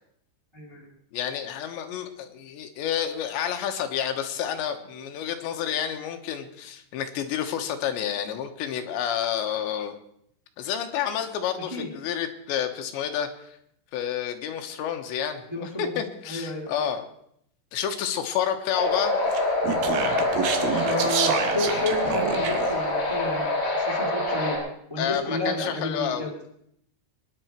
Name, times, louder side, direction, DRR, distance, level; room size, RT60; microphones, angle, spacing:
voice 1, 0.5-0.9 11.7-11.9 15.5-16.0 16.3-16.8 20.8-23.5 23.7-24.6 24.9-26.3, left 1 dB, 10° right, -1 dB, 1.6 m, -31 dB
voice 2, 1.1-9.9 10.6-13.6 13.9-17.0 17.7-19.1 25.0-26.3, left 9 dB, 85° left, 6 dB, 3.5 m, -29 dB
sound 1, 18.7-24.6, left 2 dB, 60° left, 6.4 m, -25 dB
Speech, 19.3-22.8, right 7 dB, 65° right, 2.7 m, -28 dB
24.5 x 10.5 x 4.5 m, 0.72 s
omnidirectional pair, 5.1 m